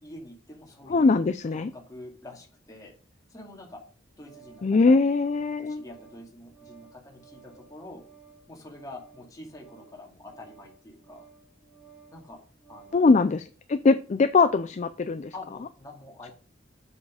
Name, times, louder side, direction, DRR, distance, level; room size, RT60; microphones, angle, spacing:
voice 1, 0.0-1.2 1.5-2.9 3.3-3.8 4.2-5.2 5.6-8.0 8.5-11.2 12.1-12.4 12.7-13.0 15.3-16.3, left 2 dB, 20° left, 0 dB, 2.3 m, -46 dB
voice 2, 0.9-1.7 4.6-5.8 12.9-15.3, left 4 dB, 40° left, 11 dB, 0.4 m, -22 dB
Organ, 3.7-13.1, right 6 dB, 5° right, 3.2 m, -55 dB
7.2 x 6.4 x 4.9 m, 0.39 s
head